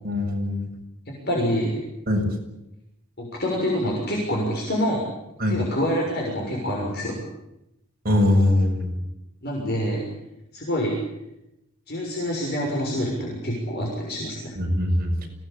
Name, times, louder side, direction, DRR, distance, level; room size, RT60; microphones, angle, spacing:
voice 1, 0.0-0.7 2.1-2.3 5.4-5.6 8.0-8.9 14.6-15.3, left 1 dB, 45° right, 0 dB, 7.2 m, -22 dB
voice 2, 1.3-1.8 3.2-5.1 5.5-7.2 9.4-10.0 10.5-10.9 11.9-14.5, equal, 45° left, -2 dB, 6.5 m, -26 dB
25.5 x 19.0 x 8.6 m, 0.89 s
head